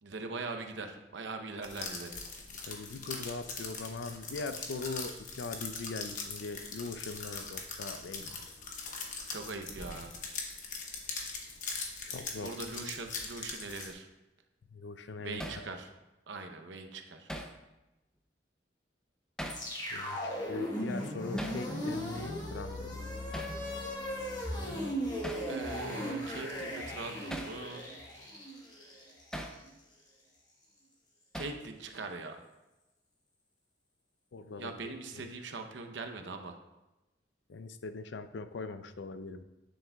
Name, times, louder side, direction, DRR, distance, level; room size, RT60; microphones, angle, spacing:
voice 1, 0.0-2.2 9.3-10.1 12.4-14.1 15.2-15.9 16.3-17.3 24.4-24.7 25.5-27.8 31.3-32.4 34.6-36.6, right 3 dB, 80° right, 6 dB, 0.8 m, -41 dB
sound 1, 1.6-13.9, left 4 dB, 45° left, 1.0 m, -41 dB
voice 2, 2.5-8.5 12.0-12.6 14.7-15.7 19.9-23.1 34.3-35.3 37.5-39.4, left 3 dB, 75° left, 11 dB, 0.5 m, -41 dB
Hammer, 15.4-15.7 17.3-17.6 19.4-19.7 21.4-21.6 23.3-23.6 25.2-25.5 27.3-27.6 29.3-29.6 31.3-31.7, equal, 5° left, 0.5 m, -40 dB
sound 2, 19.5-29.7, equal, 20° left, 1.2 m, -37 dB
9.5 x 7.1 x 2.3 m, 1.0 s
head